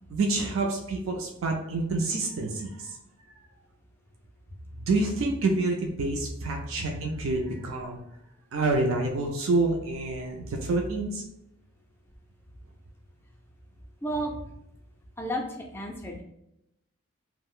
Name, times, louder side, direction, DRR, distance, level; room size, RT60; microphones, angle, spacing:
voice 1, 0.1-3.0 4.7-8.0 8.5-11.2, right 2 dB, 65° right, 2 dB, 0.4 m, -27 dB
voice 2, 14.0-14.3 15.2-16.2, equal, 10° left, 0 dB, 0.3 m, -32 dB
2.4 x 2.0 x 3.6 m, 0.82 s
head